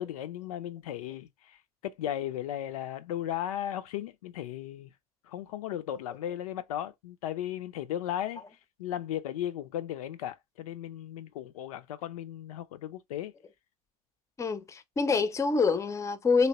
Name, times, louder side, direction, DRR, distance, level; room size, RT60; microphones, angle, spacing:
voice 1, 0.0-4.9 5.2-8.4 8.8-13.3, left 11 dB, 70° left, 0.4 m, -36 dB
voice 2, 14.4-16.5, left 4 dB, 15° left, 0.5 m, -26 dB
2.9 x 2.8 x 2.9 m
hypercardioid pair, 80°, 19 cm